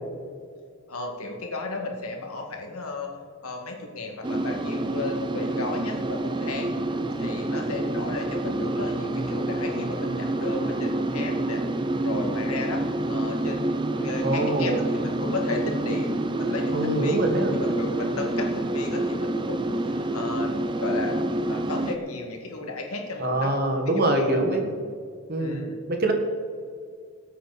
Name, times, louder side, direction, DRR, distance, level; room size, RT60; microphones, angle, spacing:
voice 1, 0.9-3.1 3.4-11.6 12.0-14.8 15.0-17.2 17.5-20.5 20.8-21.2 21.5-23.6 23.9-24.8 25.4-25.8, left 3 dB, 85° left, 2 dB, 2.1 m, -34 dB
sound 1, 4.2-22.0, right 1 dB, 20° right, 0.5 m, -27 dB
voice 2, 14.2-14.8 16.7-17.5 23.2-24.6 25.3-26.1, right 2 dB, 45° right, 3 dB, 1.7 m, -24 dB
19.5 x 8.3 x 4.3 m, 2.1 s
head